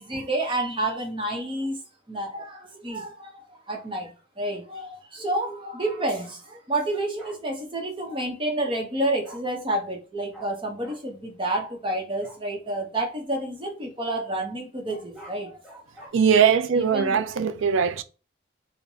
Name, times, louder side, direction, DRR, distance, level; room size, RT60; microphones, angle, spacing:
voice 1, 0.0-1.8 2.1-15.5 16.0-16.1 16.7-17.2, right 1 dB, 25° right, 0.8 m, -29 dB
Bark, 7.2-7.4 9.2-9.4 10.3-10.5 10.8-11.0 12.2-12.4 14.9-16.1, right 1 dB, ahead, 1.6 m, -45 dB
voice 2, 16.1-18.0, right 7 dB, 90° right, 0.4 m, -20 dB
4.4 x 2.1 x 2.7 m
head